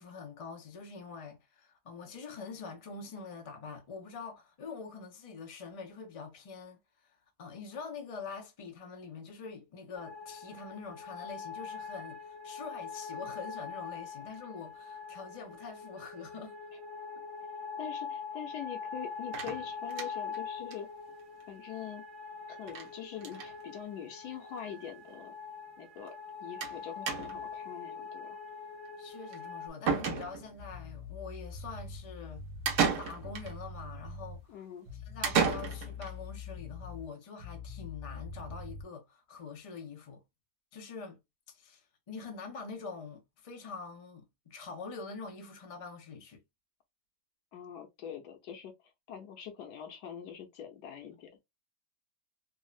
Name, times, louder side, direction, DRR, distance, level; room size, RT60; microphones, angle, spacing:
voice 1, 0.0-6.8 7.4-16.5 17.2-17.3 29.0-32.5 33.0-34.4 35.1-40.2 40.7-41.2 41.5-46.4, left 5 dB, 45° left, 0.4 m, -45 dB
sound 1, 10.0-29.7, left 5 dB, ahead, 0.9 m, -43 dB
voice 2, 17.8-20.9 21.5-22.0 22.5-25.3 25.8-26.1 26.4-28.4 34.5-34.9 47.5-48.7 49.1-51.4, left 9 dB, 90° left, 1.3 m, -44 dB
sound 2, 19.3-20.4 20.7-20.8 21.1-21.2 21.4-21.5 22.7-22.9 23.2-23.5 24.4-24.5 24.8-24.9 26.6-26.8 27.1-27.5 29.3-29.4 29.9-30.6 32.7-33.5 35.2-36.1, right 6 dB, 80° right, 1.3 m, -32 dB
sound 3, 30.6-34.5 34.9-37.1 37.4-38.8, left 4 dB, 65° right, 1.1 m, -44 dB
3.5 x 2.0 x 2.4 m
omnidirectional pair, 1.7 m